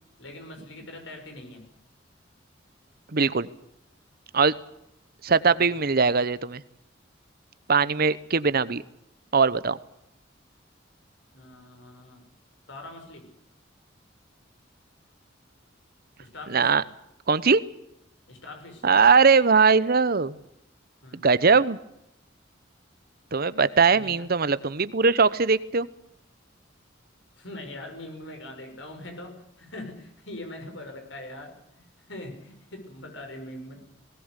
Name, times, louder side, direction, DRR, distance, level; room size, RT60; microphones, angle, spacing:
voice 1, 0.2-1.7 5.5-5.8 11.3-12.2 12.7-13.3 16.2-16.7 18.3-18.9 21.0-21.2 23.9-24.2 27.3-33.8, left 1 dB, 75° left, 5 dB, 6.5 m, -42 dB
voice 2, 3.1-3.5 4.3-4.5 5.2-6.6 7.7-8.8 9.3-9.8 16.5-16.8 17.3-17.6 18.8-20.4 21.2-21.8 23.3-25.9, right 5 dB, 55° right, 17 dB, 0.9 m, -20 dB
20.0 x 18.5 x 8.3 m, 0.80 s
head